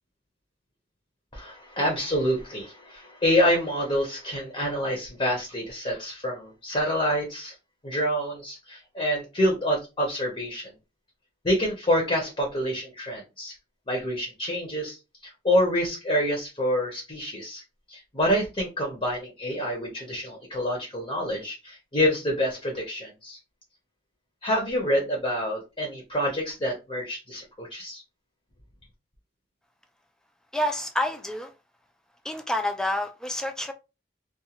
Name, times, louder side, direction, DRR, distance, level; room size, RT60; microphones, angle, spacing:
voice 1, 1.3-7.5 7.8-10.7 11.4-13.5 13.9-15.0 15.2-17.6 17.9-23.4 24.4-28.0, equal, 30° left, 0.7 m, -27 dB
voice 2, 30.5-31.5 32.2-33.7, left 1 dB, 5° left, 0.4 m, -28 dB
2.4 x 2.3 x 2.9 m
head